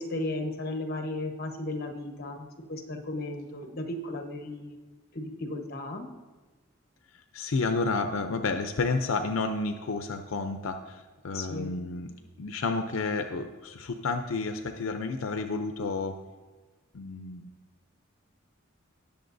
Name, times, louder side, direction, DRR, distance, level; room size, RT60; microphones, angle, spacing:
voice 1, 0.0-4.8 5.1-6.1 11.3-11.9, left 2 dB, 50° left, 3 dB, 1.2 m, -35 dB
voice 2, 7.3-12.1 12.4-16.2 16.9-17.4, left 3 dB, 85° left, 7 dB, 0.6 m, -30 dB
18.5 x 6.8 x 2.6 m, 1.3 s
head